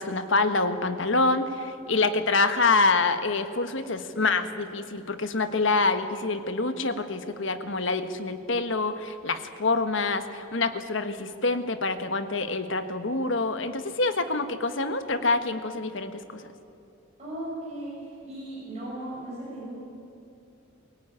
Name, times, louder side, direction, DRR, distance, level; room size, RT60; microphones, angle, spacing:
voice 1, 0.0-16.4, left 3 dB, 65° left, 9 dB, 1.4 m, -26 dB
voice 2, 17.2-19.7, right 1 dB, 30° right, -7 dB, 6.7 m, -37 dB
23.0 x 17.0 x 9.9 m, 2.7 s
head